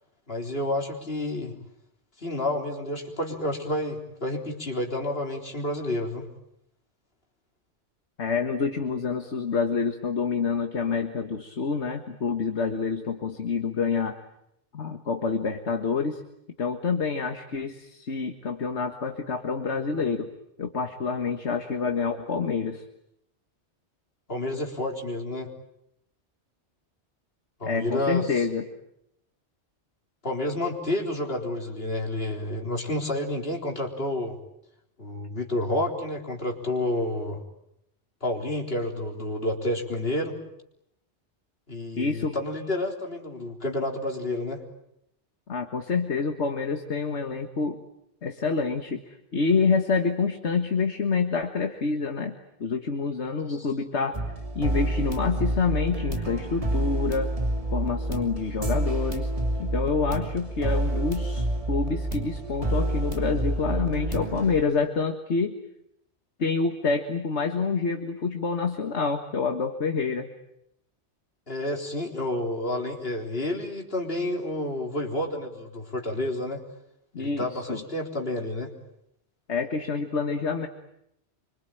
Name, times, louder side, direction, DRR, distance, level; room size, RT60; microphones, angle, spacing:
voice 1, 0.3-1.5 2.2-6.3 24.3-25.5 27.6-28.5 30.2-34.4 35.0-37.4 38.2-40.4 41.7-44.6 53.5-53.7 71.5-76.6 77.2-78.7, left 1 dB, 60° left, 2 dB, 4.1 m, -30 dB
voice 2, 8.2-14.2 14.7-16.2 16.6-20.3 20.6-22.8 27.6-28.7 41.9-42.4 45.5-47.8 48.2-52.4 52.6-54.2 54.5-57.3 57.7-59.3 59.6-65.6 66.4-70.3 77.1-77.8 79.5-80.7, left 4 dB, 75° left, 6 dB, 1.9 m, -27 dB
sound 1, 54.1-64.6, right 1 dB, 30° right, 3.1 m, -28 dB
26.5 x 25.0 x 9.1 m, 0.79 s
omnidirectional pair, 1.2 m